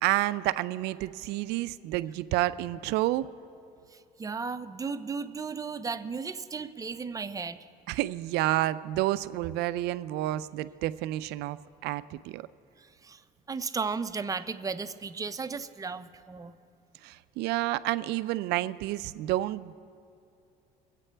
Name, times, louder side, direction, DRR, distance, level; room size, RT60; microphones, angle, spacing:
voice 1, 0.0-3.3 7.9-11.6 11.8-12.4 17.0-19.7, right 16 dB, 75° right, 14 dB, 0.4 m, -29 dB
voice 2, 3.9-7.6 13.0-13.2 13.5-16.5, right 5 dB, 20° right, 11 dB, 0.5 m, -35 dB
22.5 x 8.2 x 3.3 m, 2.5 s
cardioid pair, 100°, 17 cm